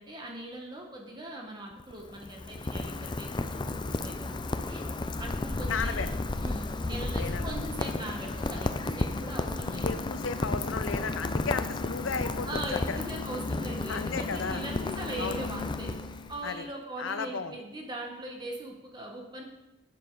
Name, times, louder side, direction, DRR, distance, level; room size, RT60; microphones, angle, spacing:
voice 1, 0.0-4.8 5.2-6.1 6.4-10.0 12.5-15.9 16.3-19.4, right 1 dB, 20° right, 0 dB, 1.1 m, -40 dB
Rain, 1.7-16.5, left 2 dB, 20° left, 0.4 m, -33 dB
voice 2, 5.7-6.1 7.2-7.5 9.8-13.0 13.9-14.7 15.2-15.4 16.4-16.7 17.0-17.6, left 5 dB, 65° left, 10 dB, 0.7 m, -34 dB
11.0 x 7.4 x 3.9 m, 0.97 s
head